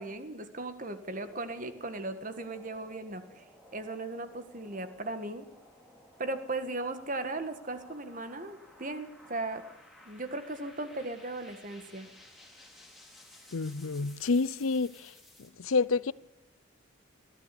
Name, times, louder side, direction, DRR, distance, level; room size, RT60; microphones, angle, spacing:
voice 1, 0.0-3.4 3.7-5.5 6.2-9.6 10.0-12.1, right 2 dB, 40° right, 1.7 m, -37 dB
sound 1, 0.9-15.5, left 1 dB, ahead, 4.0 m, -56 dB
voice 2, 13.5-15.1 15.6-16.1, left 4 dB, 80° left, 0.6 m, -28 dB
22.0 x 14.0 x 8.5 m
head